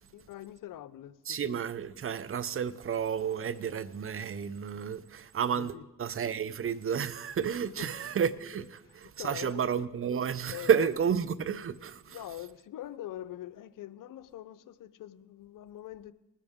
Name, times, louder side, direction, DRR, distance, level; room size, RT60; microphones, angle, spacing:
voice 1, 0.1-1.6 5.5-5.8 7.5-7.9 8.5-9.6 10.5-10.9 12.1-16.1, left 13 dB, 65° left, 0.7 m, -44 dB
voice 2, 1.3-12.2, right 7 dB, 40° right, 0.7 m, -31 dB
20.5 x 10.0 x 3.7 m
cardioid pair, 70°, 35 cm